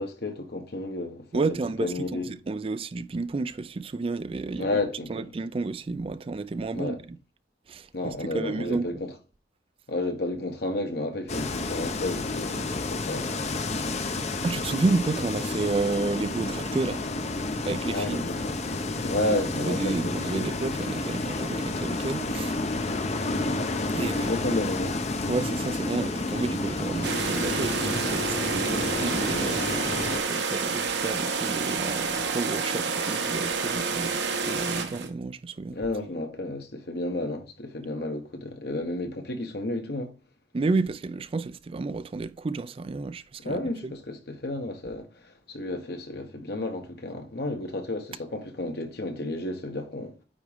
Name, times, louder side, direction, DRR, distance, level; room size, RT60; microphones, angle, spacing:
voice 1, 0.0-2.3 4.6-5.3 6.7-7.0 7.9-9.1 9.9-13.3 17.9-18.5 19.0-20.5 23.3-23.5 24.0-25.0 35.7-40.1 43.4-50.1, left 2 dB, 65° left, 1.4 m, -32 dB
voice 2, 1.3-4.8 5.1-7.0 7.7-8.9 14.4-17.0 17.7-18.3 19.1-19.3 19.5-22.6 23.9-24.4 25.3-29.9 30.3-35.8 40.5-43.9, right 3 dB, 30° right, 0.4 m, -31 dB
sound 1, 11.3-30.2, left 2 dB, 40° left, 0.7 m, -30 dB
sound 2, 27.0-35.1, right 4 dB, 80° right, 1.1 m, -29 dB
9.3 x 3.7 x 3.5 m
head